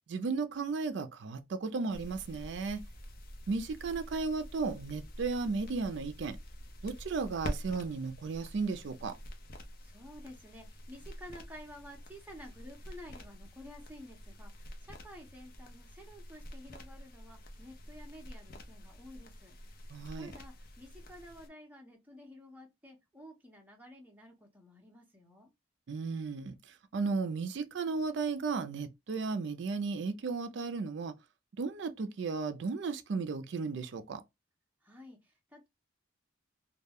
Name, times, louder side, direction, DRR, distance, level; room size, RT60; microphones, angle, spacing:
voice 1, 0.1-2.8 3.5-6.4 6.8-9.2 19.9-20.3 25.9-31.1 31.6-34.2, right 4 dB, 60° right, 0.4 m, -35 dB
sound 1, 1.9-21.5, equal, 45° left, 0.5 m, -47 dB
voice 2, 9.8-19.5 20.2-25.5 34.8-35.7, equal, 10° right, 0.7 m, -52 dB
2.2 x 2.1 x 3.4 m
head